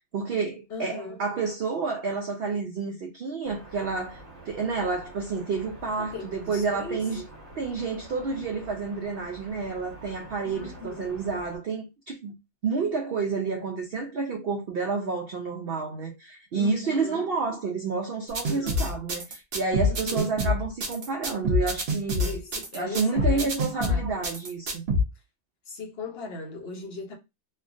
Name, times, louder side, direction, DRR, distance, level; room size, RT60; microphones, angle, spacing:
voice 1, 0.0-7.2 7.6-12.3 12.6-22.3 22.7-24.8, right 4 dB, 90° right, 0.5 m, -30 dB
voice 2, 0.7-1.2 6.0-7.1 10.4-11.1 16.5-17.3 18.4-18.8 19.9-20.3 22.2-24.2 25.7-27.2, left 3 dB, 55° left, 0.7 m, -38 dB
sound 1, 3.4-11.6, right 1 dB, 30° right, 1.5 m, -47 dB
sound 2, 18.3-25.0, left 1 dB, 55° right, 0.8 m, -26 dB
3.2 x 2.2 x 2.4 m
omnidirectional pair, 1.6 m